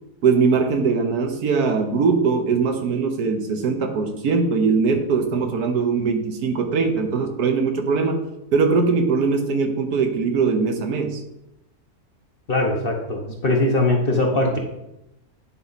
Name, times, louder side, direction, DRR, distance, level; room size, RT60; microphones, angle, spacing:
voice 1, 0.2-8.2 8.5-11.2, right 5 dB, 75° right, 5 dB, 1.4 m, -21 dB
voice 2, 12.5-14.6, left 2 dB, 40° left, 1 dB, 1.0 m, -21 dB
9.9 x 4.2 x 4.0 m, 0.87 s
omnidirectional pair, 1.7 m